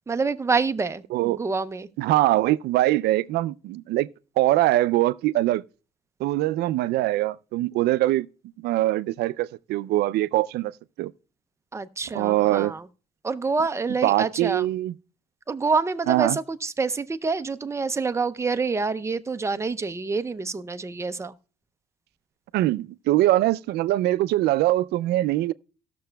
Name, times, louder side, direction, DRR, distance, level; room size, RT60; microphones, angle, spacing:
voice 1, 0.1-1.9 11.7-12.9 13.2-14.7 15.5-21.4, right 4 dB, 15° right, 0.5 m, -27 dB
voice 2, 1.1-1.4 2.0-4.1 4.4-5.6 6.2-8.3 8.6-10.7 11.0-11.1 12.1-12.7 14.0-14.9 16.1-16.4 22.5-25.5, right 16 dB, 75° right, 0.4 m, -22 dB
17.5 x 6.7 x 2.2 m
cardioid pair, 110°, 17 cm